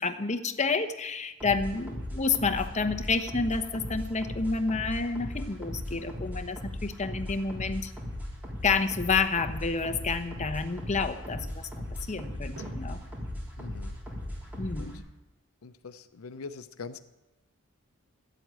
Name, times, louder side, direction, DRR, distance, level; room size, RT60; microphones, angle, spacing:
voice 1, 0.0-7.9 8.6-11.7 12.1-13.0 14.6-15.0, left 4 dB, 35° left, 8 dB, 0.9 m, -29 dB
sound 1, 1.4-15.0, left 1 dB, 10° right, 3.4 m, -38 dB
sound 2, 4.8-15.1, right 1 dB, 65° right, 3.9 m, -56 dB
voice 2, 13.6-13.9 14.8-15.0 15.6-17.0, left 4 dB, 90° left, 12 dB, 0.6 m, -43 dB
13.0 x 7.8 x 8.8 m, 1.0 s
head